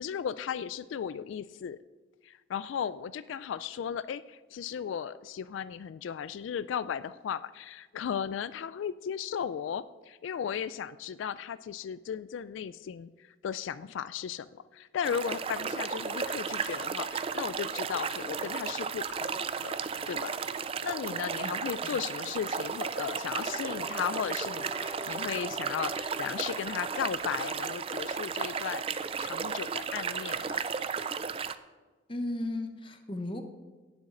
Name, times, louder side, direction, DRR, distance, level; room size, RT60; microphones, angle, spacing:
voice 1, 0.0-1.8 2.2-19.7 20.1-20.3 20.8-30.6, left 8 dB, 85° left, 15 dB, 0.3 m, -36 dB
sound 1, 15.0-31.6, right 6 dB, 30° right, 0.3 m, -34 dB
sound 2, 23.1-27.3, equal, 75° right, 2.1 m, -45 dB
voice 2, 32.1-33.5, left 1 dB, 25° left, 7 dB, 0.9 m, -35 dB
17.0 x 7.2 x 3.8 m, 1.3 s
head